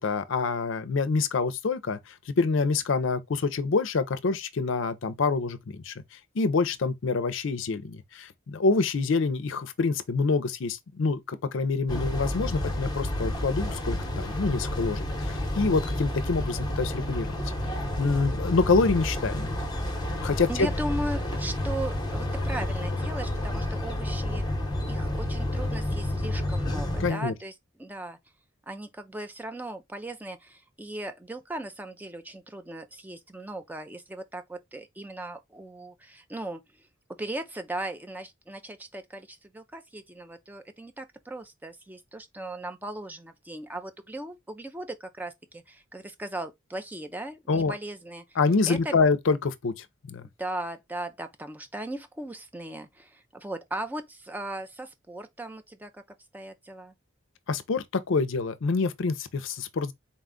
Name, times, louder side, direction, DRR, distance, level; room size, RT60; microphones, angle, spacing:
voice 1, 0.0-2.0 2.3-5.9 6.4-17.3 18.0-19.5 20.2-20.7 27.0-27.3 47.5-47.7 48.4-50.2 57.5-59.9, left 4 dB, 65° left, 0.5 m, -26 dB
sound 1, 11.9-27.1, left 1 dB, 20° left, 0.9 m, -30 dB
voice 2, 20.5-24.4 24.9-27.5 27.8-28.2 28.7-36.9 37.2-48.4 48.7-49.0 50.4-56.0 56.3-56.9, right 1 dB, 10° right, 0.4 m, -38 dB
4.0 x 2.3 x 3.6 m
head